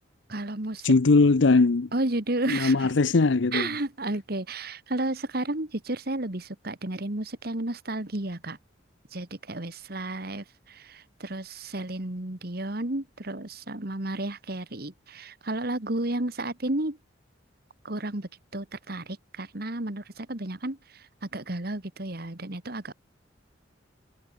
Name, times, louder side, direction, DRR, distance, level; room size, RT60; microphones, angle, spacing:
voice 1, 0.3-0.9 1.9-2.9 3.5-8.6 9.1-17.0 17.8-22.9, right 2 dB, 50° right, 1.9 m, -32 dB
voice 2, 0.8-1.9 2.5-3.7, left 3 dB, 65° left, 0.7 m, -20 dB
head